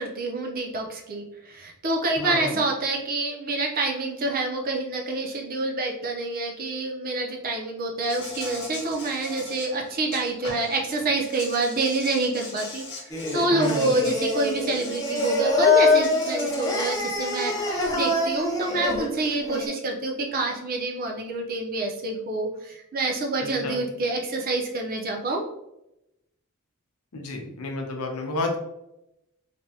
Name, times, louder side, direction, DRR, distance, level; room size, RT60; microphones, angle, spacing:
voice 1, 0.0-25.4, right 2 dB, 45° right, 1 dB, 0.6 m, -27 dB
voice 2, 2.2-2.5 13.5-14.0 23.4-23.8 27.1-28.6, left 2 dB, 90° left, 2 dB, 0.7 m, -31 dB
Insect, 8.0-10.8 11.2-15.4 16.0-18.0, left 2 dB, 55° left, 0.9 m, -40 dB
Singing, 13.1-19.7, left 3 dB, 15° left, 0.5 m, -24 dB
3.3 x 2.2 x 2.7 m, 0.86 s
head